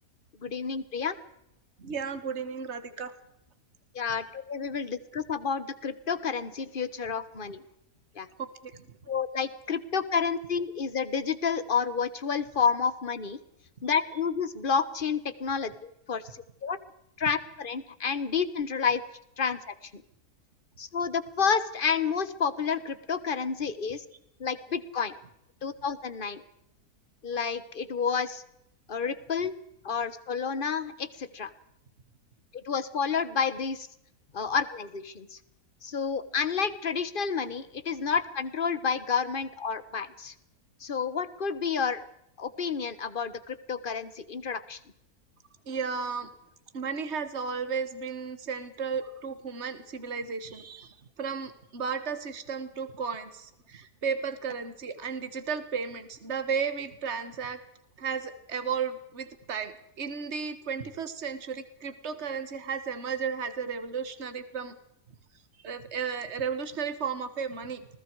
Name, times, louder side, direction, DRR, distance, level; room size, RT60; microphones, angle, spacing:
voice 1, 0.4-1.1 3.9-7.6 8.1-8.3 9.1-13.4 13.8-16.8 17.2-19.0 19.4-20.0 20.8-24.0 24.4-25.1 25.6-26.4 27.2-28.4 28.9-29.5 29.8-31.5 32.5-33.9 34.3-35.4 35.8-40.3 40.8-42.0 42.4-44.8, left 6 dB, 35° left, 14 dB, 1.2 m, -30 dB
voice 2, 1.8-3.1 8.4-8.9 45.7-46.3 46.7-57.6 58.0-59.7 60.0-64.8 65.6-67.9, right 6 dB, 45° right, 11 dB, 1.8 m, -34 dB
27.5 x 20.5 x 4.8 m, 0.80 s
omnidirectional pair, 1.7 m